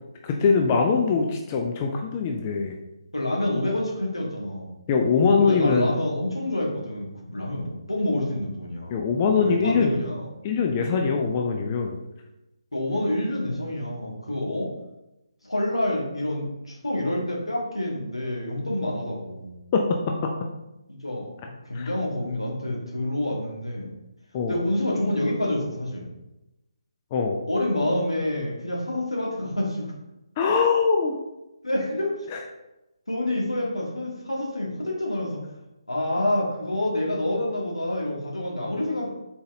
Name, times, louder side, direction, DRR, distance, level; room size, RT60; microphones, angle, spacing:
voice 1, 0.2-2.8 4.9-5.9 8.9-9.9 10.4-12.0 19.7-20.3 21.7-21.9 24.3-24.6 27.1-27.4 30.4-31.2 32.3-32.4, left 5 dB, 25° left, 2 dB, 0.3 m, -22 dB
voice 2, 3.1-4.7 5.4-9.0 9.3-10.3 12.7-14.7 15.4-19.5 20.9-21.3 21.6-23.9 24.5-26.1 27.5-29.9 31.6-32.3 33.1-35.4 35.9-39.1, left 1 dB, 80° left, -2 dB, 1.3 m, -27 dB
4.1 x 3.8 x 2.5 m, 0.95 s
figure-of-eight pair, 145°, 3 cm